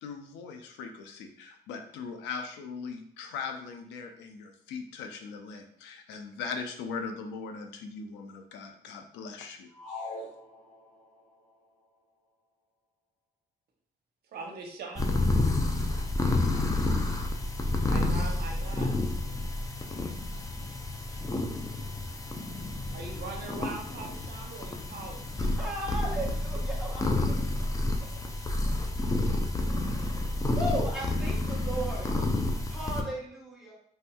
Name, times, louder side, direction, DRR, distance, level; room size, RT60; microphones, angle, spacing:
voice 1, 0.0-10.1, left 5 dB, 90° left, 5 dB, 0.5 m, -40 dB
sound 1, 9.7-11.2, left 2 dB, 40° left, 0.9 m, -42 dB
voice 2, 14.3-15.2 17.8-18.9 22.9-25.4, right 3 dB, 65° right, 1 dB, 0.8 m, -41 dB
sound 2, 14.9-33.0, left 2 dB, 20° left, 0.4 m, -29 dB
voice 3, 25.6-27.4 30.3-33.8, right 1 dB, ahead, -5 dB, 1.1 m, -36 dB
3.2 x 2.7 x 2.2 m, 0.64 s
cardioid pair, 80°, 18 cm